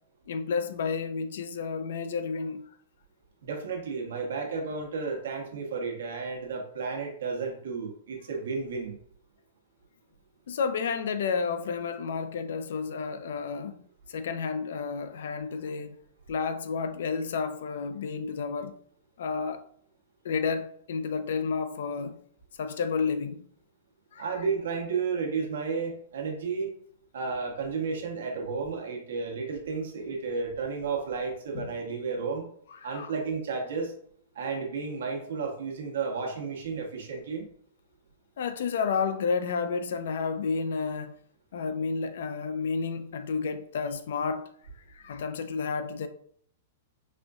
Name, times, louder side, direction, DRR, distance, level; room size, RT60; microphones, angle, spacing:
voice 1, 0.3-2.6 10.5-13.8 14.1-16.0 16.3-18.8 19.2-19.6 20.2-22.2 22.6-23.4 24.1-24.2 31.5-31.7 32.8-33.1 38.4-41.1 41.5-44.5 44.9-46.1, left 5 dB, 75° left, 0.4 m, -31 dB
voice 2, 3.4-9.0 24.2-26.7 27.1-32.5 32.8-33.9 34.3-37.5, right 5 dB, 80° right, 0.9 m, -32 dB
4.2 x 2.5 x 2.3 m
hypercardioid pair, 150°, 0 cm